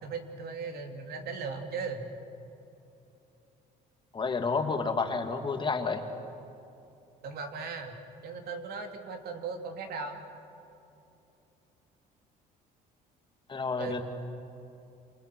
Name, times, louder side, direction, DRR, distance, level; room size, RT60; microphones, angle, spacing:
voice 1, 0.0-2.1 7.2-10.2 13.8-14.0, right 4 dB, 70° right, 4 dB, 3.0 m, -38 dB
voice 2, 4.1-6.0 13.5-14.0, left 4 dB, 30° left, 5 dB, 2.2 m, -30 dB
27.5 x 27.5 x 6.2 m, 2.9 s
cardioid pair, 110°, 17 cm